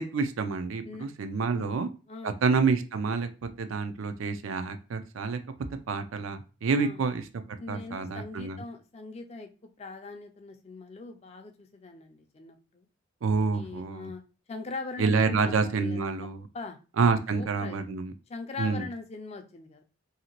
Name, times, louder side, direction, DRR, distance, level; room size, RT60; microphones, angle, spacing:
voice 1, 0.0-1.9 2.2-3.3 3.6-5.4 5.9-7.2 7.7-8.6 13.2-14.1 15.0-16.5 17.0-18.1 18.6-18.8, right 4 dB, 75° right, 9 dB, 0.4 m, -28 dB
voice 2, 7.6-9.5 9.8-12.8 13.5-14.2 14.5-16.0 16.5-16.8 17.3-17.9 18.3-19.8, left 3 dB, 30° left, 6 dB, 0.4 m, -41 dB
2.8 x 2.7 x 2.8 m, 0.33 s
head